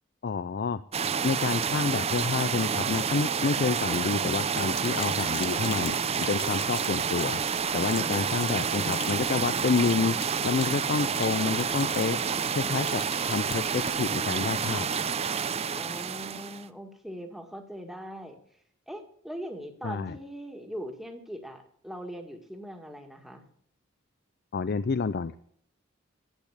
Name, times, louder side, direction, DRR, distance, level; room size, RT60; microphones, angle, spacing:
voice 1, 0.2-0.8 1.2-7.4 7.7-12.2 12.5-15.0 19.8-20.2 24.5-25.4, left 5 dB, 50° left, 14 dB, 0.4 m, -29 dB
sound 1, 0.9-16.7, right 6 dB, 30° right, 0.5 m, -29 dB
Sink (filling or washing), 4.7-14.0, left 5 dB, 25° left, 1.8 m, -45 dB
voice 2, 8.0-8.9 15.8-18.4 18.9-23.4, equal, ahead, 4 dB, 1.8 m, -41 dB
12.0 x 8.5 x 8.2 m, 0.65 s
head